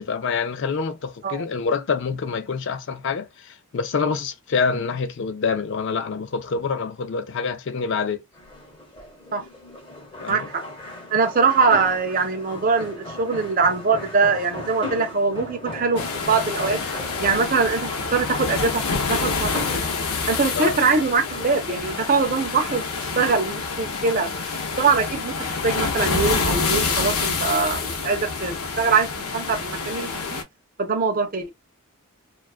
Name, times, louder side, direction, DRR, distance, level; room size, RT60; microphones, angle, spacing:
voice 1, 0.0-8.2 10.2-10.5 20.5-20.8, left 5 dB, 55° left, 0.4 m, -26 dB
sound 1, 8.3-22.1, left 1 dB, 25° left, 0.9 m, -37 dB
voice 2, 10.3-10.6 11.1-16.8 17.2-19.8 20.3-22.9 23.2-24.3 24.8-29.1 29.3-30.4 30.8-31.5, right 4 dB, 40° right, 0.5 m, -22 dB
sound 2, 16.0-30.4, left 4 dB, 90° left, 0.7 m, -27 dB
2.3 x 2.2 x 2.3 m
head